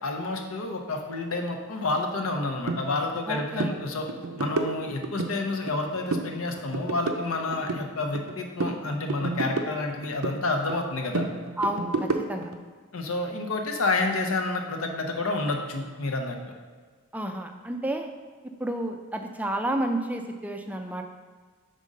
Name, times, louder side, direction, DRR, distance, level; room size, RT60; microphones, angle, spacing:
voice 1, 0.0-4.1 4.4-11.3 12.9-16.4, left 2 dB, 70° left, 4 dB, 0.8 m, -29 dB
sound 1, 2.7-2.8 3.2-3.3 3.6-3.8 4.1-5.3 5.7-6.3 6.6-8.3 8.6-10.4 10.7-12.5, right 3 dB, 75° right, 0.5 m, -30 dB
voice 2, 3.3-3.8 11.6-12.5 17.1-18.1 18.4-21.0, right 1 dB, 5° right, 5 dB, 0.3 m, -31 dB
5.1 x 3.7 x 5.2 m, 1.5 s
head